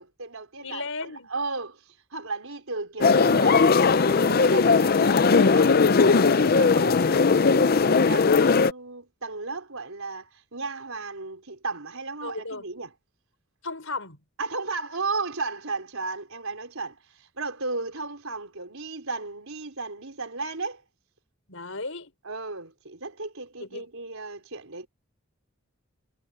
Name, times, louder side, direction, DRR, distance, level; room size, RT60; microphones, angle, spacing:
voice 1, 0.0-3.7 4.1-12.9 14.4-20.8 22.2-24.9, right 3 dB, 80° right, 4.3 m, -35 dB
voice 2, 0.6-1.3 12.2-12.6 13.6-14.2 21.5-22.1 23.6-23.9, left 3 dB, 70° left, 6.0 m, -35 dB
sound 1, 3.0-8.7, left 4 dB, 45° left, 0.5 m, -19 dB
head